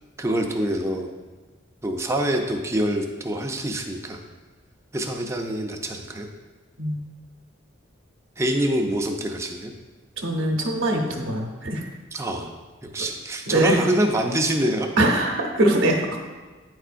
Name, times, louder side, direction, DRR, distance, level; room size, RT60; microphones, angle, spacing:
voice 1, 0.2-1.1 1.8-4.2 4.9-6.3 8.4-9.7 12.1-12.5 12.8-14.9, right 1 dB, 15° right, 3 dB, 0.5 m, -25 dB
voice 2, 10.2-11.8 13.5-13.9 15.0-16.0, right 1 dB, 75° right, 1 dB, 0.8 m, -22 dB
9.0 x 4.5 x 2.5 m, 1.3 s
head